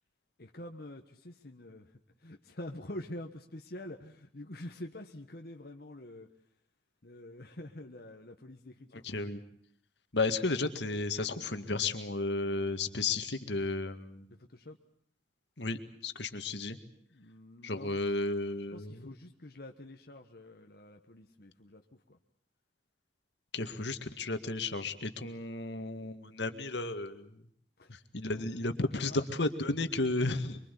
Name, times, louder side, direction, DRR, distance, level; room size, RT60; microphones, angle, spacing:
voice 1, 0.4-1.9 2.2-6.3 7.0-9.0 14.3-14.8 17.1-18.0 18.7-22.2 27.8-28.0 28.3-28.4 28.8-29.3 30.2-30.4, left 1 dB, 60° left, 3 dB, 1.4 m, -46 dB
voice 2, 8.9-9.4 10.1-14.2 15.6-16.8 17.6-19.0 23.5-27.3 28.1-30.6, left 3 dB, 80° left, 9 dB, 1.9 m, -33 dB
24.5 x 24.0 x 8.4 m, 0.63 s
head